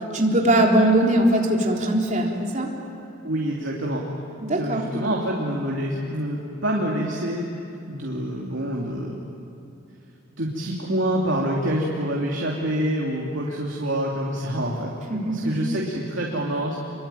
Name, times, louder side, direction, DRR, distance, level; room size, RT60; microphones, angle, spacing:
voice 1, 0.1-2.7 4.4-4.8 15.1-15.5, right 1 dB, 40° right, -1 dB, 3.8 m, -20 dB
voice 2, 3.2-4.0 4.6-7.5 7.9-9.1 10.4-14.9 15.3-16.8, right 1 dB, 70° right, -2 dB, 2.9 m, -26 dB
27.0 x 23.5 x 9.2 m, 2.8 s
head